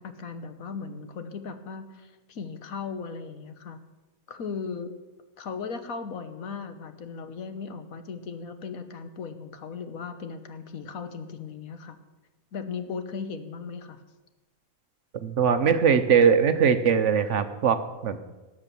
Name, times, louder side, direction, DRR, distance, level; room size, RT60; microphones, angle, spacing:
voice 1, 0.0-3.8 4.3-4.9 5.4-12.0 12.5-14.0, left 5 dB, 70° left, 9 dB, 1.5 m, -37 dB
voice 2, 15.2-18.2, right 7 dB, 60° right, 10 dB, 1.1 m, -21 dB
18.0 x 7.3 x 6.9 m, 1.2 s
omnidirectional pair, 1.5 m